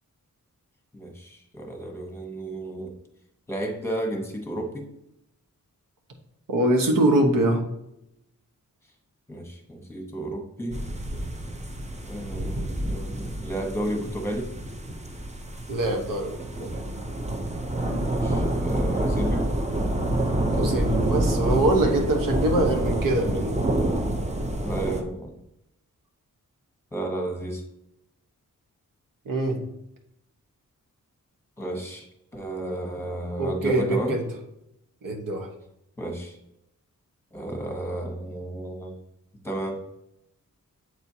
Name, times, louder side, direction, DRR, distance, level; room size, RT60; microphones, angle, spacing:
voice 1, 0.9-2.9 3.5-4.9 9.3-10.8 12.1-14.5 18.1-19.5 24.6-25.3 26.9-27.6 31.6-32.1 32.3-34.2 36.0-36.4 37.3-38.9 39.4-39.8, right 1 dB, 10° left, 2 dB, 1.1 m, -32 dB
voice 2, 6.5-7.6 15.7-16.7 20.5-23.6 29.2-29.6 33.4-34.2 35.0-35.5, right 1 dB, 85° right, 2 dB, 1.1 m, -23 dB
sound 1, 10.7-25.0, right 1 dB, 20° right, 0.5 m, -27 dB
7.9 x 4.3 x 2.7 m, 0.81 s
wide cardioid pair, 150°, 32 cm